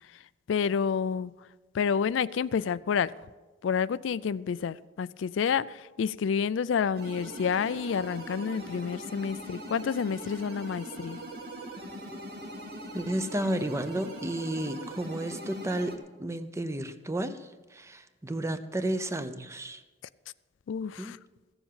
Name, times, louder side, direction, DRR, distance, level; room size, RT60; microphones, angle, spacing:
voice 1, 0.5-1.3 1.7-3.1 3.6-11.2 20.7-21.2, left 6 dB, 80° left, 17 dB, 0.4 m, -29 dB
sound 1, 6.9-16.0, right 1 dB, 55° right, 1.9 m, -41 dB
voice 2, 12.9-19.8 21.0-21.1, right 1 dB, 15° right, 10 dB, 0.6 m, -32 dB
14.5 x 7.1 x 7.4 m, 1.2 s
head